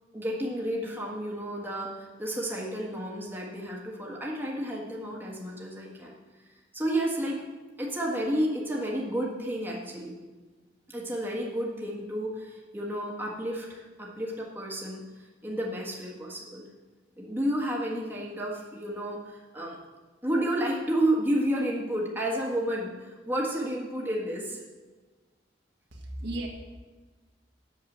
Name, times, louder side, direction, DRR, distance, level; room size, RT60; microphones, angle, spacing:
voice 1, 0.1-6.2 6.7-7.4 7.8-10.1 10.9-15.0 15.4-16.6 17.2-19.8 20.2-24.6, right 1 dB, 10° right, -3 dB, 1.6 m, -31 dB
voice 2, 25.9-26.5, right 1 dB, 60° right, 0 dB, 1.6 m, -35 dB
8.1 x 7.1 x 7.4 m, 1.3 s
head